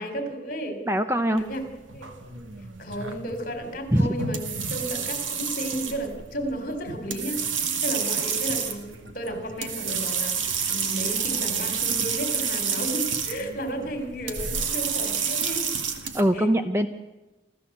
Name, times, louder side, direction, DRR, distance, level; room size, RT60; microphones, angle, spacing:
voice 1, 0.0-0.8 1.3-1.7 1.9-2.1 2.8-7.4 7.8-15.7 16.3-16.5, right 1 dB, 45° left, 7 dB, 3.8 m, -33 dB
voice 2, 0.9-1.5 3.9-4.1 16.1-16.9, right 1 dB, 15° right, 8 dB, 0.8 m, -22 dB
sound 1, 1.4-16.2, right 6 dB, 85° right, 2.1 m, -29 dB
28.5 x 14.0 x 8.1 m, 1.0 s
head